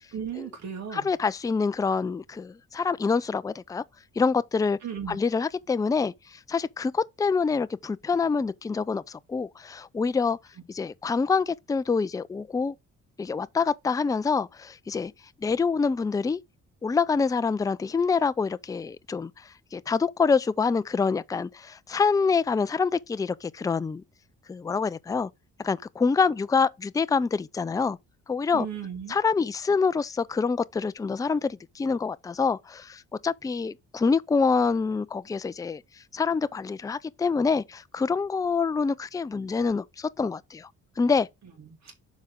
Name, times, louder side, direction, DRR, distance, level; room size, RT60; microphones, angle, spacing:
voice 1, 0.1-1.1 4.8-5.2 28.5-29.2 41.6-41.9, right 8 dB, 60° right, 3.1 m, -36 dB
voice 2, 0.9-3.8 4.2-4.8 5.1-10.4 10.7-12.7 13.2-15.1 15.4-16.4 16.8-24.0 24.5-25.3 25.6-28.0 28.3-28.7 29.1-35.8 36.1-40.7 41.0-41.3, left 5 dB, 10° left, 0.4 m, -26 dB
7.3 x 4.9 x 3.7 m
cardioid pair, 90°, 30 cm